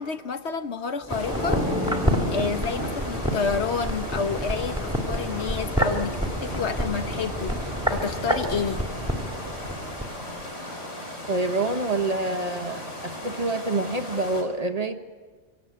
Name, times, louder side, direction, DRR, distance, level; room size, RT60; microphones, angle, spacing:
voice 1, 0.0-1.7 2.3-8.8, left 5 dB, 70° left, 8 dB, 1.3 m, -29 dB
sound 1, 1.0-10.1 10.4-10.5, equal, 5° right, 2.3 m, -28 dB
sound 2, 1.1-14.4, left 1 dB, 85° left, 4.5 m, -37 dB
voice 2, 11.3-15.0, right 2 dB, 35° right, 6 dB, 1.2 m, -27 dB
25.0 x 17.5 x 8.8 m, 1.4 s
omnidirectional pair, 1.2 m